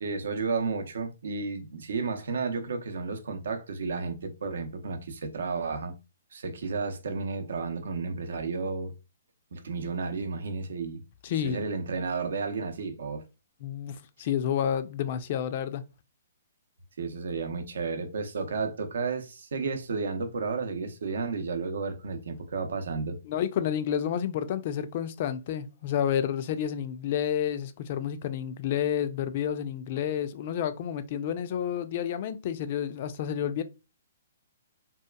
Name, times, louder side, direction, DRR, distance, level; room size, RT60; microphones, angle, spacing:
voice 1, 0.0-6.0 6.3-8.9 9.5-11.0 11.4-13.2 17.0-23.2, right 4 dB, 75° right, 0.6 m, -32 dB
voice 2, 11.2-11.7 13.6-15.8 23.2-33.6, left 9 dB, 45° left, 0.3 m, -30 dB
2.8 x 2.4 x 2.2 m
hypercardioid pair, 140°, 0 cm